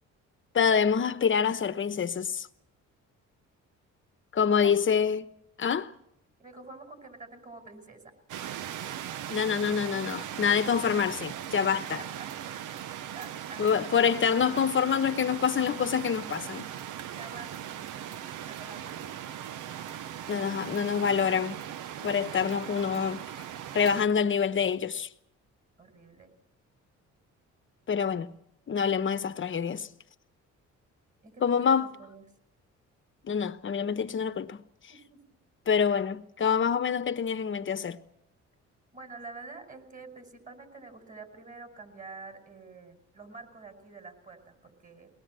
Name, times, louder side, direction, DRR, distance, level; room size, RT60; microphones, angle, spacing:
voice 1, 0.5-2.5 4.3-5.3 5.6-5.9 9.3-12.0 13.6-16.7 20.3-21.6 22.0-23.2 23.7-25.1 27.9-28.3 28.7-29.9 31.4-31.9 33.2-34.6 35.7-38.0, left 7 dB, 40° left, 1.0 m, -26 dB
voice 2, 4.3-4.8 6.4-8.1 11.6-12.8 13.1-13.9 17.2-19.2 25.8-26.3 31.2-32.2 34.9-35.2 38.9-45.1, right 3 dB, 25° right, 5.3 m, -47 dB
sound 1, 8.3-24.1, right 10 dB, 80° right, 0.8 m, -39 dB
22.5 x 19.5 x 7.6 m
cardioid pair, 90°, 30 cm